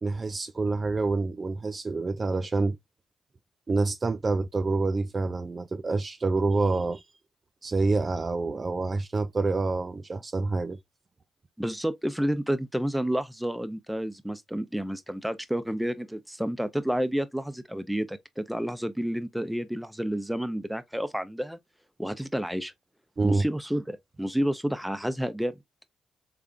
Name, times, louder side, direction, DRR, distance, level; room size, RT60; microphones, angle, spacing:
voice 1, 0.0-2.8 3.7-7.0 7.6-10.8 23.2-23.4, right 3 dB, 40° right, 0.4 m, -27 dB
voice 2, 11.6-21.6 22.0-22.7 23.2-25.5, equal, 5° right, 0.7 m, -30 dB
3.7 x 3.4 x 2.4 m
supercardioid pair, 55°, 0 cm